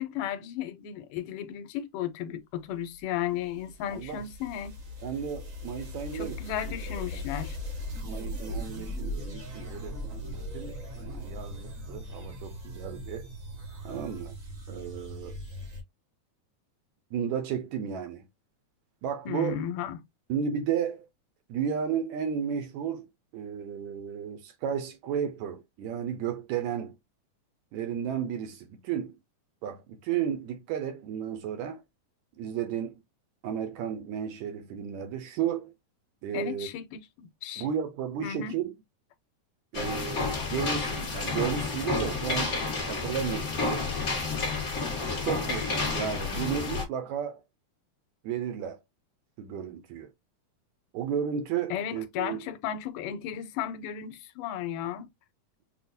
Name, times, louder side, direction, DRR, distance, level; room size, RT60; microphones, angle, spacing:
voice 1, 0.0-4.8 6.1-7.6 19.3-20.0 36.3-37.7 38.2-38.5 51.7-55.1, left 10 dB, 90° left, 2.2 m, -34 dB
sound 1, 2.9-15.8, left 1 dB, 60° right, 0.8 m, -39 dB
voice 2, 3.9-4.2 5.0-6.8 7.1-7.2 8.0-10.0 10.3-13.3 13.8-14.4 14.7-15.4 17.1-18.3 19.0-19.6 20.3-21.1 21.5-23.1 23.3-27.0 27.7-29.2 29.6-31.8 32.4-33.0 33.4-35.7 36.2-36.7 37.6-38.7 39.7-43.8 45.2-47.4 48.2-48.8 49.4-50.1 50.9-52.4, right 8 dB, 80° right, 1.7 m, -33 dB
sound 2, 39.7-46.8, left 3 dB, 35° left, 1.1 m, -30 dB
6.2 x 2.2 x 2.6 m
omnidirectional pair, 3.7 m